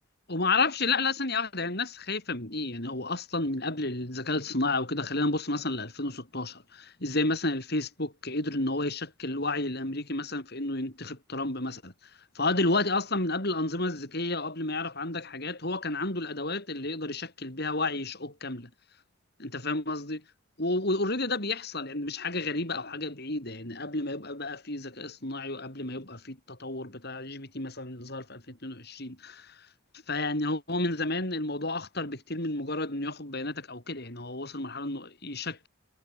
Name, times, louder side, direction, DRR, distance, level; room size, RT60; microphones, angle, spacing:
voice 1, 0.3-11.9 12.4-18.7 19.4-20.2 20.6-29.4 30.1-35.7, left 2 dB, 55° left, 7.6 m, -31 dB
head